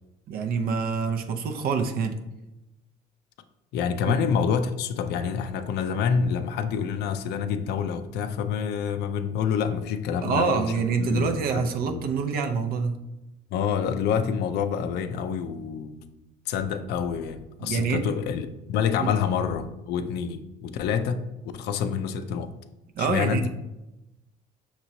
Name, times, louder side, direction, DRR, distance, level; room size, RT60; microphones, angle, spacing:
voice 1, 0.3-2.2 4.1-4.2 10.2-13.0 17.6-18.1 19.0-19.1 23.0-23.5, right 5 dB, 65° right, 6 dB, 0.5 m, -26 dB
voice 2, 3.7-10.7 11.0-12.1 13.5-16.2 16.5-21.2 21.5-22.5 23.0-23.5, left 7 dB, 75° left, 10 dB, 0.4 m, -27 dB
6.0 x 3.0 x 2.7 m, 0.96 s
cardioid pair, 110°, 17 cm